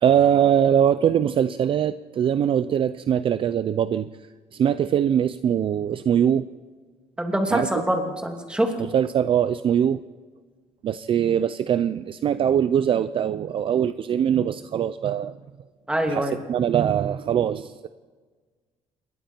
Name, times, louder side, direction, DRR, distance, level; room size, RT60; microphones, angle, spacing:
voice 1, 0.0-4.1 4.5-6.5 7.5-7.7 8.8-10.0 10.8-15.4 16.1-17.9, right 9 dB, 45° right, 13 dB, 0.5 m, -22 dB
voice 2, 7.2-8.7 15.9-16.4, right 1 dB, 5° right, 2 dB, 2.8 m, -24 dB
27.5 x 22.0 x 4.6 m, 1.4 s
cardioid pair, 140°, 13 cm